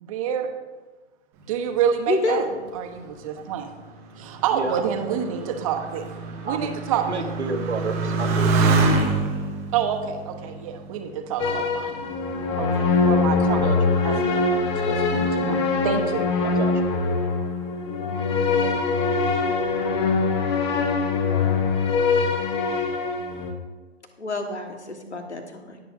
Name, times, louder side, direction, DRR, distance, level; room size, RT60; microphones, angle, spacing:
voice 1, 0.0-0.5 1.5-2.4 2.7-3.7 4.2-6.1 6.4-7.2 9.7-11.9 12.6-13.8 14.0-16.2, right 8 dB, 30° right, 4 dB, 1.0 m, -28 dB
voice 2, 2.1-2.5 24.2-25.8, left 2 dB, 75° left, 5 dB, 1.6 m, -28 dB
Motorcycle, 2.8-11.7 12.5-13.1, right 3 dB, 5° right, 0.4 m, -27 dB
voice 3, 4.5-4.8 6.5-8.5 13.5-13.8 16.4-16.7, right 4 dB, 75° right, 5 dB, 1.3 m, -30 dB
sound 1, 11.4-23.5, left 4 dB, 25° left, 0.9 m, -23 dB
19.0 x 6.8 x 2.6 m, 1.3 s
figure-of-eight pair, 125°, 34 cm